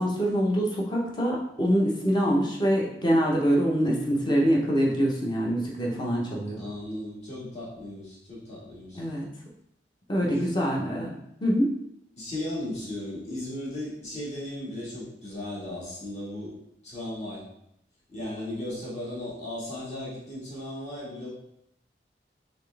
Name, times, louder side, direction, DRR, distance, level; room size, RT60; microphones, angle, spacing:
voice 1, 0.0-6.6 8.9-9.3 10.1-11.1 11.4-11.7, equal, 25° left, -2 dB, 0.8 m, -25 dB
voice 2, 6.6-9.0 10.2-10.6 12.2-16.5 16.8-17.5 18.1-21.3, left 1 dB, 40° left, -7 dB, 1.7 m, -36 dB
4.1 x 3.4 x 3.3 m, 0.77 s
head